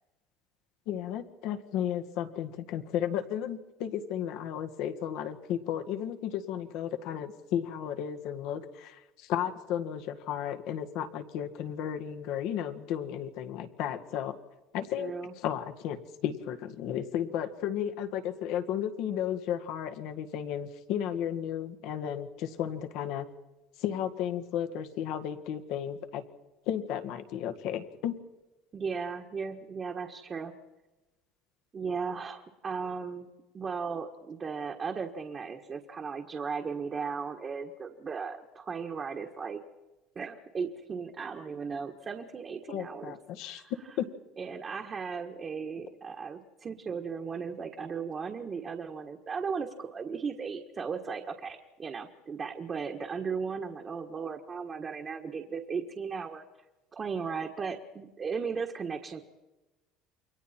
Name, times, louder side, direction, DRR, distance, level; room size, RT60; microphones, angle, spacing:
voice 1, 0.9-14.3 14.7-15.1 15.4-23.3 23.8-26.2 26.7-28.1 42.7-43.6 44.0-44.1, left 10 dB, 65° left, 7 dB, 1.9 m, -34 dB
voice 2, 15.0-15.3 28.7-30.5 31.7-33.3 33.5-39.6 40.1-43.1 43.4-43.7 44.4-56.4 56.9-59.2, right 5 dB, 25° right, 2 dB, 1.6 m, -36 dB
28.5 x 23.5 x 4.5 m, 1.1 s
cardioid pair, 145°, 0 cm